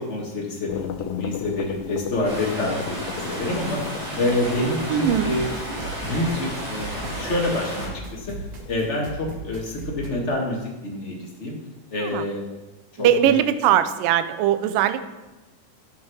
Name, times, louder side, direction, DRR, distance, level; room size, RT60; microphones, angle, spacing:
voice 1, 0.0-3.8 4.2-5.4 6.0-8.3 8.7-11.6 11.9-12.4 12.9-13.3, left 1 dB, 35° left, -1 dB, 1.2 m, -27 dB
sound 1, 0.7-9.0, left 10 dB, 85° left, 2.2 m, -36 dB
sound 2, 2.2-7.9, right 1 dB, 45° right, 5.5 m, -33 dB
sound 3, 4.5-10.1, right 3 dB, 60° right, 1.0 m, -38 dB
voice 2, 4.9-5.3 12.0-12.2 13.0-15.2, right 10 dB, 80° right, 12 dB, 2.2 m, -20 dB
10.5 x 7.4 x 6.2 m, 1.1 s
omnidirectional pair, 4.1 m